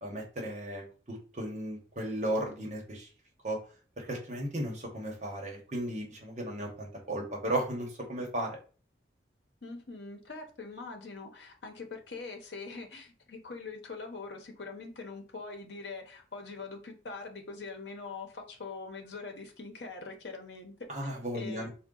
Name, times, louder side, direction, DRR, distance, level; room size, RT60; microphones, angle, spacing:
voice 1, 0.0-3.1 3.4-3.6 4.0-8.6 20.9-21.7, right 1 dB, 40° right, 1.0 m, -35 dB
voice 2, 9.6-20.7 21.0-21.1 21.3-21.7, left 4 dB, 70° left, 0.8 m, -43 dB
3.7 x 2.2 x 3.8 m
head